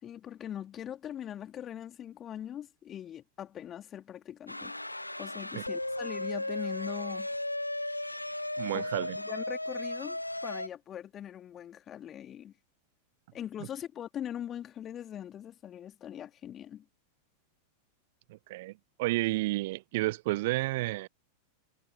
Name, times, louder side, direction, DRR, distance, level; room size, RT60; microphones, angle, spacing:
voice 1, 0.0-4.7 5.2-7.3 8.7-8.8 9.1-12.5 13.3-16.8, left 10 dB, 25° left, 2.8 m, -41 dB
sound 1, 4.5-10.7, left 1 dB, 85° left, 0.6 m, -35 dB
voice 2, 8.6-9.2 18.3-18.7 19.0-21.1, right 20 dB, 50° right, 0.7 m, -31 dB
figure-of-eight pair, 90°, 0 cm